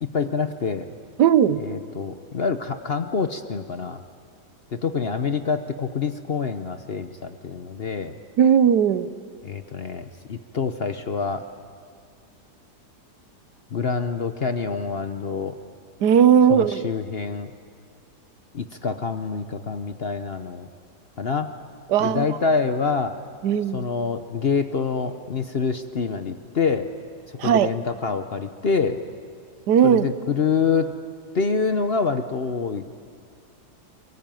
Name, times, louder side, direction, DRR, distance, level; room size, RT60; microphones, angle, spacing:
voice 1, 0.0-0.9 1.6-4.0 4.7-8.1 9.4-11.4 13.7-15.5 16.5-17.5 18.5-20.7 21.2-21.5 22.0-23.1 23.7-26.9 27.4-29.0 29.8-30.9 31.3-32.8, left 5 dB, 45° left, 8 dB, 0.9 m, -26 dB
voice 2, 1.2-1.6 8.4-9.1 16.0-16.9 21.9-22.4 23.4-23.8 27.4-27.7 29.7-30.0, right 8 dB, 80° right, 13 dB, 1.4 m, -17 dB
23.5 x 23.0 x 9.2 m, 2.3 s
omnidirectional pair, 1.8 m